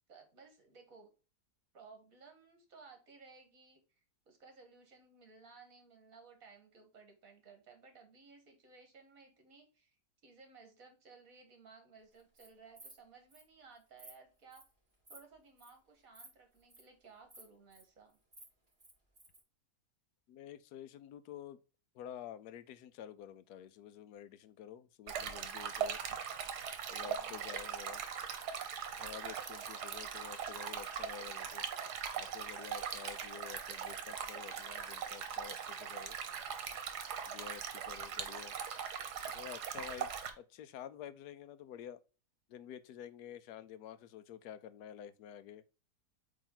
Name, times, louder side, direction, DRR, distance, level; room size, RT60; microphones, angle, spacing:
voice 1, 0.1-1.1 1.7-3.8 4.3-10.0 10.2-14.6 15.1-18.2 27.0-27.5, right 4 dB, 60° right, 2.0 m, -58 dB
Insect, 12.2-12.5 12.8-13.0 13.3-13.4 13.8-14.1 14.5-14.7 15.1-15.3 15.6-15.8 16.1-16.3 16.6-16.8 17.3-17.8 18.1-19.4, right 1 dB, 40° right, 3.5 m, -55 dB
voice 2, 20.3-21.6 21.9-26.0 26.9-28.0 29.0-31.6 32.1-36.2 37.3-38.5 39.3-42.0 42.5-45.6, left 9 dB, 80° left, 1.1 m, -50 dB
Stream, 25.1-40.3, right 7 dB, 80° right, 1.4 m, -40 dB
8.4 x 3.1 x 3.8 m
omnidirectional pair, 1.7 m